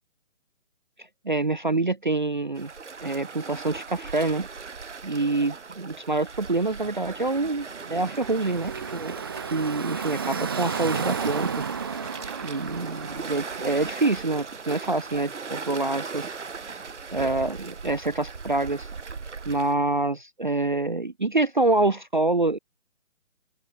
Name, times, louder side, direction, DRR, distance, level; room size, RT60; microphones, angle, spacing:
voice 1, 1.2-2.7 3.0-4.5 5.0-9.1 9.5-11.6 12.4-16.4 17.1-18.9 19.5-22.6, right 2 dB, 40° right, 0.5 m, -26 dB
Waves surf, 2.5-19.7, right 5 dB, 60° right, 5.5 m, -38 dB
Car passing by / Traffic noise roadway noise, 7.6-14.6, right 6 dB, 20° right, 1.0 m, -33 dB
open air
hypercardioid pair, 170°, 39 cm